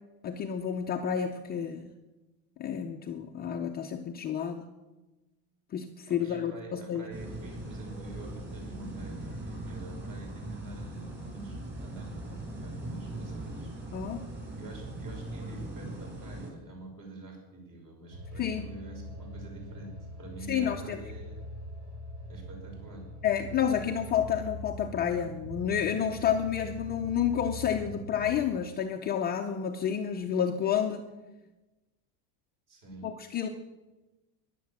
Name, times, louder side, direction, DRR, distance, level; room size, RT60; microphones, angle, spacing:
voice 1, 0.2-1.9 2.6-4.7 5.7-7.1 13.9-14.3 18.4-18.6 20.5-21.0 23.2-31.1 33.0-33.5, left 8 dB, 20° left, 3 dB, 0.5 m, -30 dB
voice 2, 6.1-13.7 14.5-21.4 22.3-23.1 32.7-33.1, right 1 dB, 40° right, 1 dB, 5.6 m, -47 dB
sound 1, 7.1-16.5, right 2 dB, 20° right, 4.8 m, -40 dB
sound 2, 18.1-28.4, equal, 70° right, 7.0 m, -43 dB
14.0 x 11.0 x 7.2 m, 1.1 s
cardioid pair, 165°, 47 cm